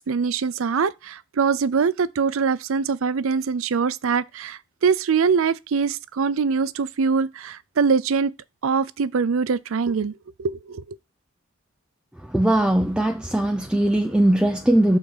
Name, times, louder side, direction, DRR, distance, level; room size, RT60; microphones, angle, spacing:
voice 1, 0.1-8.3 8.6-10.1 10.4-10.8, right 5 dB, 70° right, 0.5 m, -23 dB
voice 2, 12.3-15.0, right 1 dB, 5° right, 0.4 m, -20 dB
6.7 x 4.1 x 5.4 m
head